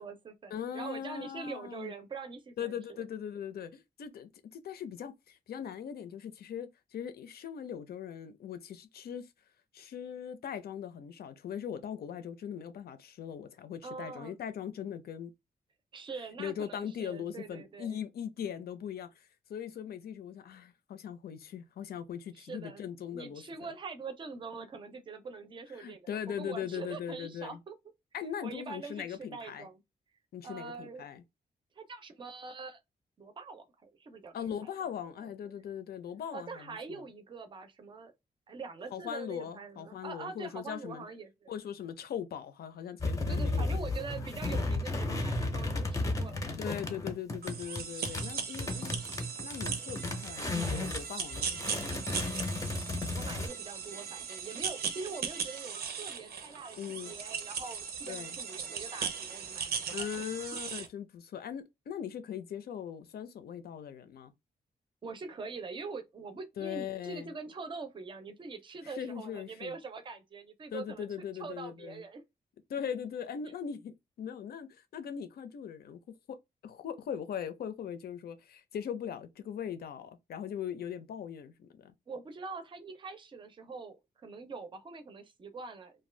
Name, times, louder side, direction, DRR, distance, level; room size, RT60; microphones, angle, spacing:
voice 1, 0.0-3.0 13.8-14.3 15.9-18.0 22.4-27.7 28.4-29.8 30.4-31.1 31.8-32.8 33.2-34.7 36.3-38.1 38.5-41.5 43.3-46.6 53.1-60.3 60.8-60.9 65.0-71.1 71.4-72.2 82.1-85.9, right 4 dB, 30° right, 0.5 m, -44 dB
voice 2, 0.5-1.9 2.6-9.3 9.7-15.3 16.4-23.7 25.8-27.6 28.1-29.7 30.3-31.2 34.3-37.0 38.9-41.0 41.5-43.8 46.6-49.0 49.4-52.1 56.8-57.1 58.1-58.4 59.9-64.3 66.6-67.3 68.8-69.8 70.7-72.0 72.7-76.0 76.3-76.4 76.6-81.9, left 8 dB, 80° left, 0.5 m, -40 dB
sound 1, 43.0-51.1 51.3-53.5, left 2 dB, 20° left, 0.5 m, -34 dB
sound 2, 47.4-60.9, right 6 dB, 85° right, 0.6 m, -38 dB
2.6 x 2.2 x 3.2 m
wide cardioid pair, 155°, 16 cm